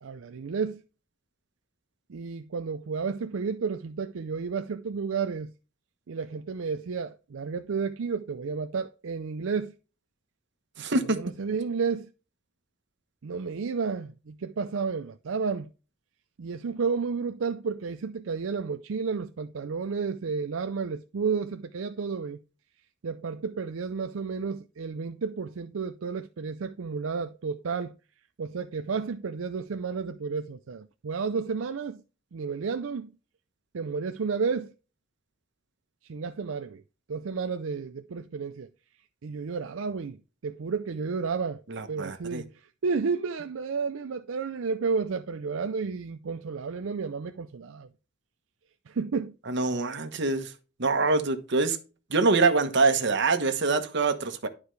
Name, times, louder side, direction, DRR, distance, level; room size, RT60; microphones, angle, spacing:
voice 1, 0.0-0.8 2.1-5.5 6.1-9.7 11.0-12.1 13.2-15.7 16.4-22.4 23.0-27.9 28.4-32.0 32.3-33.1 33.7-34.7 36.1-36.8 37.1-38.7 39.2-41.6 41.9-42.5 42.8-47.9 48.9-49.4, right 5 dB, 80° right, 0.5 m, -31 dB
voice 2, 10.8-11.2 41.7-42.4 49.5-50.5 50.8-51.8 52.1-54.5, right 3 dB, 60° right, 1.2 m, -25 dB
11.5 x 4.9 x 3.3 m
head